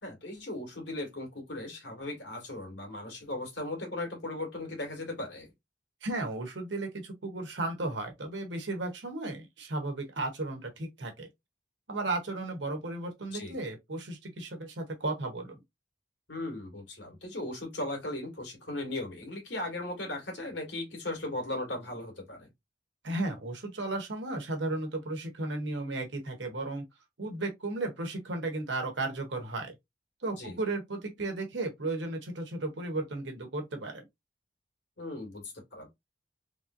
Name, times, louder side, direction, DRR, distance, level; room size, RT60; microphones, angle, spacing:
voice 1, 0.0-5.5 13.3-13.6 16.3-22.5 30.4-30.6 35.0-35.9, left 2 dB, 80° left, 1.8 m, -37 dB
voice 2, 6.0-11.3 11.9-15.6 23.0-26.8 27.2-29.7 30.2-34.0, right 2 dB, 85° right, 1.1 m, -34 dB
3.4 x 2.6 x 2.5 m
head